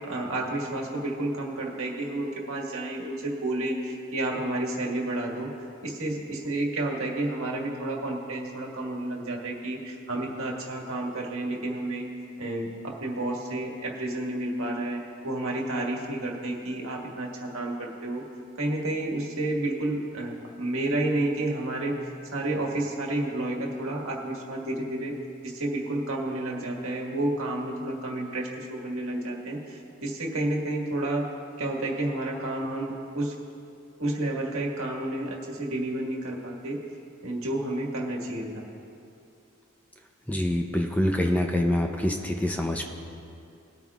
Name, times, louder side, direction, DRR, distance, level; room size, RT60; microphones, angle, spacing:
voice 1, 0.0-5.5 5.8-12.1 12.4-18.2 18.6-21.9 22.3-25.1 25.4-31.2 31.6-33.3 34.0-36.8 37.2-38.6, right 1 dB, 70° right, -1 dB, 1.6 m, -30 dB
voice 2, 40.3-42.8, left 1 dB, 5° left, 3 dB, 0.5 m, -25 dB
20.0 x 9.1 x 2.4 m, 2.6 s
head